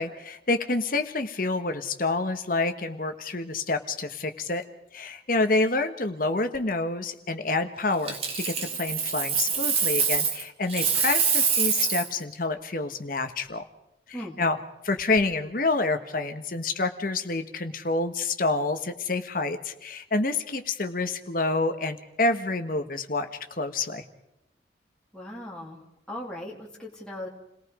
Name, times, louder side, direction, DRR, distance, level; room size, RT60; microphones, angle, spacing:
voice 1, 0.0-4.6 4.9-13.6 14.1-14.6 14.8-23.3 23.6-24.0, left 3 dB, 50° left, 8 dB, 1.3 m, -28 dB
Coin (dropping), 8.1-10.4 10.7-12.2 15.0-15.2, right 6 dB, 35° right, 2.2 m, -25 dB
voice 2, 25.1-25.8 26.1-27.3, left 1 dB, 5° left, -3 dB, 2.5 m, -38 dB
29.0 x 19.0 x 5.0 m, 0.86 s
head